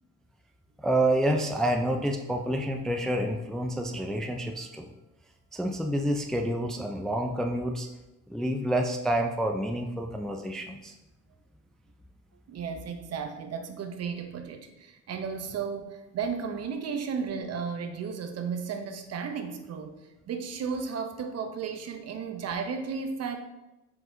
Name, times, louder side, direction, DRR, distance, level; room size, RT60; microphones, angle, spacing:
voice 1, 0.8-4.9 5.5-7.9 8.3-10.9, right 1 dB, ahead, 3 dB, 0.3 m, -28 dB
voice 2, 12.5-23.4, right 6 dB, 55° right, 6 dB, 0.6 m, -34 dB
4.5 x 3.9 x 2.6 m, 0.98 s
cardioid pair, 90°, 30 cm